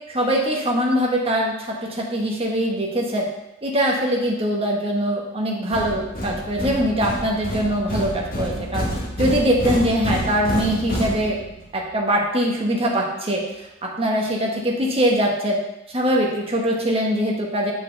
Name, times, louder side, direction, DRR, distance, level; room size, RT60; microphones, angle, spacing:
voice 1, 0.1-3.3 3.6-8.8 9.2-11.4 11.7-13.4 13.8-15.6 15.9-17.7, equal, 30° right, -1 dB, 1.3 m, -22 dB
sound 1, 5.7-11.7, equal, 45° left, 1.4 m, -28 dB
8.6 x 5.2 x 3.3 m, 0.90 s
head